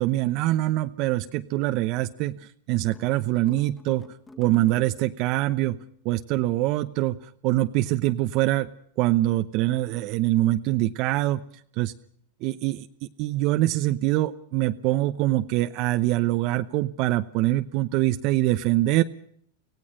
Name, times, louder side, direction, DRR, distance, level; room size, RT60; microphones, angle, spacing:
voice 1, 0.0-4.1 4.4-5.8 6.0-7.2 7.4-8.7 9.0-11.4 11.8-11.9 12.4-12.9 13.2-19.0, right 16 dB, 50° right, 9 dB, 0.8 m, -24 dB
sound 1, 2.9-5.2 5.7-6.0, left 3 dB, 15° left, 2.3 m, -47 dB
25.0 x 16.5 x 6.5 m, 0.65 s
hypercardioid pair, 115°, 0 cm